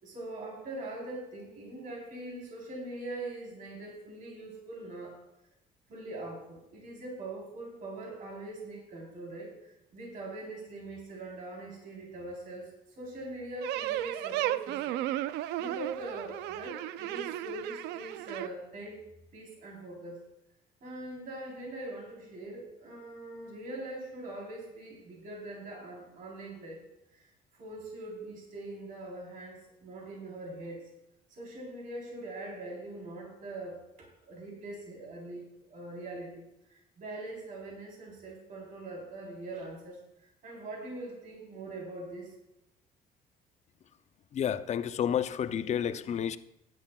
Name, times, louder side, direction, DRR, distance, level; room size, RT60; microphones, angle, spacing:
voice 1, 0.0-5.2 5.9-15.0 15.6-19.0 19.3-20.2 20.8-26.8 27.1-27.2 27.5-30.8 31.3-40.0 40.4-42.3, right 2 dB, 55° right, 3.9 m, -42 dB
sound 1, 13.6-18.5, right 14 dB, 90° right, 0.4 m, -34 dB
voice 2, 44.3-46.4, left 9 dB, 40° left, 0.6 m, -30 dB
16.0 x 11.0 x 2.3 m
cardioid pair, 110°, 17 cm